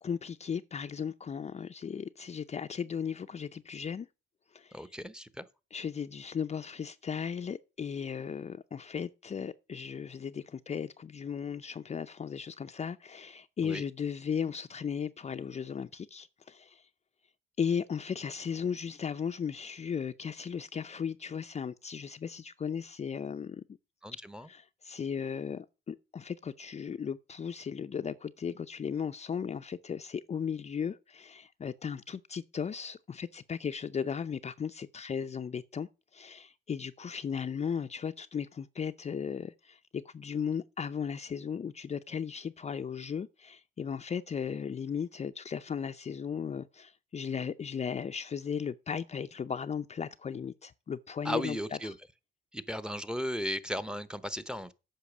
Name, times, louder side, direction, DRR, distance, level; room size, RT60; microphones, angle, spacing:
voice 1, 0.0-4.1 4.5-4.9 5.7-16.9 17.6-23.6 24.4-51.6 51.8-51.9, left 7 dB, 35° left, 0.5 m, -36 dB
voice 2, 4.7-5.4 13.6-13.8 24.0-24.5 51.2-51.9 52.5-54.7, equal, 5° right, 0.8 m, -36 dB
8.4 x 5.8 x 7.1 m
cardioid pair, 90°, 20 cm